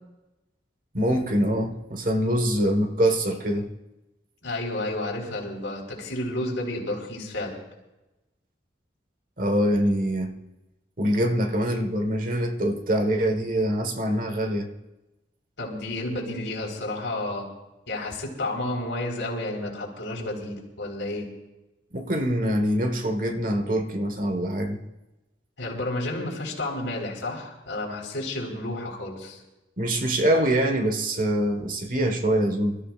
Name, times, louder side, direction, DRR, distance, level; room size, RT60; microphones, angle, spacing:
voice 1, 0.9-3.7 9.4-10.3 11.0-14.7 21.9-24.8 29.8-32.8, right 1 dB, 45° right, 1.4 m, -24 dB
voice 2, 4.4-7.6 15.6-17.5 17.9-21.3 25.6-29.4, left 1 dB, 80° left, 4.3 m, -31 dB
27.5 x 14.0 x 2.5 m
head